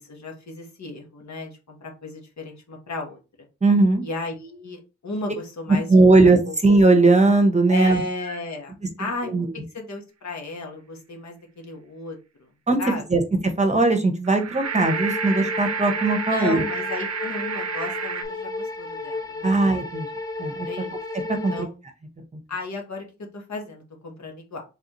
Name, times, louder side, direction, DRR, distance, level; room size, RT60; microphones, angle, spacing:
voice 1, 0.0-3.2 4.0-6.2 6.5-6.6 7.7-9.3 9.7-12.2 12.8-13.0 16.3-19.5 20.7-21.0 21.5-21.7 22.5-23.1 23.3-24.6, left 2 dB, 65° left, 2 dB, 1.3 m, -34 dB
voice 2, 3.6-4.0 5.7-8.0 9.3-9.5 12.7-12.8 13.1-16.6 19.4-20.1 20.4-20.7 21.4-21.7, right 3 dB, 20° right, 5 dB, 0.9 m, -18 dB
sound 1, 14.2-18.2, right 6 dB, 55° right, 0.6 m, -30 dB
sound 2, 14.6-21.6, left 3 dB, 10° left, 0.9 m, -33 dB
4.1 x 3.4 x 3.0 m, 0.30 s
wide cardioid pair, 80°, 30 cm